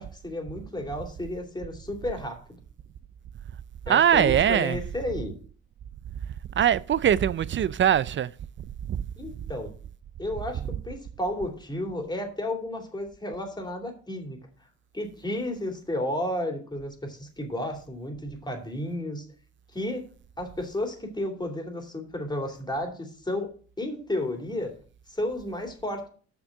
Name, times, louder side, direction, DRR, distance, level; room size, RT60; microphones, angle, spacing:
voice 1, 0.0-2.4 3.9-5.3 9.2-9.7 10.2-14.4 14.9-19.3 19.7-20.0 20.4-23.5 23.8-24.7 25.1-26.1, left 1 dB, 15° left, 2.5 m, -32 dB
voice 2, 3.9-4.8 6.6-8.3 8.9-9.1, right 9 dB, 40° right, 0.4 m, -22 dB
6.4 x 6.1 x 7.2 m
cardioid pair, 90°, 30 cm